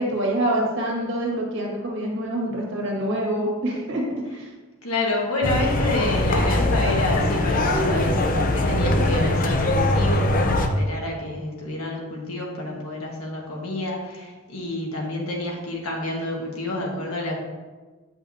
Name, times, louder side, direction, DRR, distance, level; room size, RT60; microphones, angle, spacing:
voice 1, 0.0-4.5, right 1 dB, 60° right, -2 dB, 1.8 m, -26 dB
voice 2, 4.8-10.4 10.7-17.4, left 2 dB, 85° left, -1 dB, 1.6 m, -28 dB
sound 1, 5.4-10.7, left 1 dB, 40° left, 0.6 m, -21 dB
9.2 x 5.6 x 2.8 m, 1.3 s
head